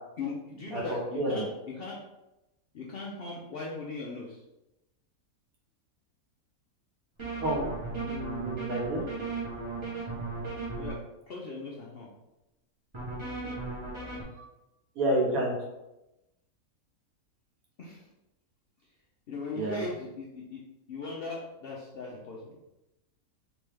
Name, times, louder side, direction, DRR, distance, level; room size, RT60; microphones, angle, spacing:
voice 1, 0.2-1.4 1.8-2.0 2.7-4.4 10.8-11.0 11.3-12.1 17.8-18.0 19.3-20.6 20.9-22.6, left 3 dB, 70° left, -3 dB, 0.5 m, -38 dB
voice 2, 0.7-1.4 7.4-7.7 8.0-9.0 14.3-14.5 15.0-15.5 19.5-19.8, right 1 dB, 70° right, -2 dB, 1.3 m, -29 dB
sound 1, 7.2-10.9 12.9-14.2, right 3 dB, 25° right, 0.7 m, -36 dB
3.3 x 3.0 x 3.2 m, 0.95 s
omnidirectional pair, 1.6 m